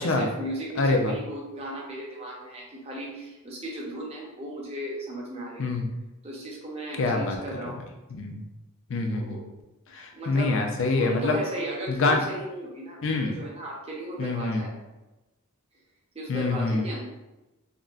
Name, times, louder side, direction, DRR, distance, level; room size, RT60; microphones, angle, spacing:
voice 1, 0.0-5.7 6.2-7.8 9.1-9.4 10.1-10.5 10.9-14.7 16.1-17.0, right 1 dB, 30° right, -3 dB, 0.6 m, -36 dB
voice 2, 0.8-1.1 5.6-5.8 6.9-7.4 8.1-8.4 8.9-9.4 9.9-11.4 11.9-12.2 13.0-13.3 14.2-14.7 16.3-16.9, left 3 dB, 60° left, 3 dB, 0.4 m, -25 dB
3.7 x 2.1 x 2.4 m, 1.0 s
head